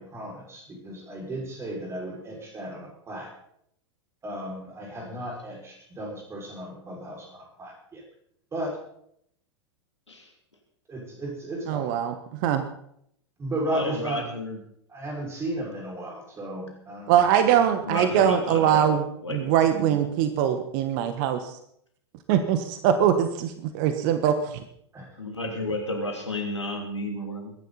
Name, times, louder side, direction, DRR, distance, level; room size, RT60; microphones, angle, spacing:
voice 1, 0.0-3.3 4.2-8.0 8.5-8.8 10.9-11.9 13.4-14.2 14.9-17.2 24.9-25.1, right 1 dB, 20° right, -1 dB, 6.0 m, -34 dB
voice 2, 11.7-12.1 12.4-12.6 17.1-19.0 19.3-21.5 22.3-24.6, right 9 dB, 45° right, 9 dB, 1.3 m, -22 dB
voice 3, 13.7-14.6 17.8-20.0 25.2-27.5, left 1 dB, 80° left, 2 dB, 3.1 m, -32 dB
21.5 x 10.5 x 4.2 m, 0.70 s
figure-of-eight pair, 95°, 15 cm